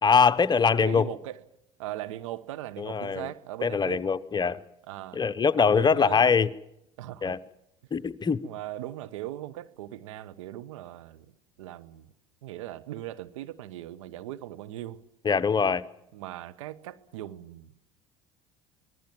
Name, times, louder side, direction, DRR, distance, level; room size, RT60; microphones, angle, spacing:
voice 1, 0.0-1.1 2.8-3.3 3.6-4.6 5.1-6.5 7.2-7.4 7.9-8.4 15.2-15.8, left 6 dB, 25° left, 0.9 m, -23 dB
voice 2, 0.8-1.4 1.8-4.0 4.9-5.2 5.6-6.3 7.0-7.3 8.4-11.3 11.6-12.1 12.4-15.0 16.1-17.7, right 14 dB, 70° right, 1.1 m, -39 dB
25.5 x 19.0 x 7.5 m
figure-of-eight pair, 60°, 17 cm